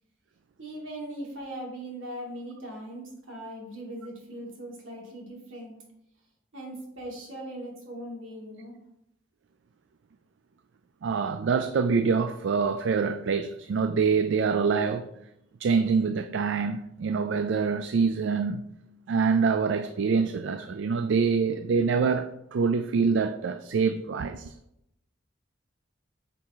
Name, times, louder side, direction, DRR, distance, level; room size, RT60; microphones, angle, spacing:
voice 1, 0.6-5.7 6.5-8.7, right 1 dB, 85° right, 2.4 m, -39 dB
voice 2, 11.0-15.1 15.6-18.6 19.1-24.5, right 5 dB, 70° right, 0.4 m, -25 dB
8.5 x 4.7 x 3.6 m
head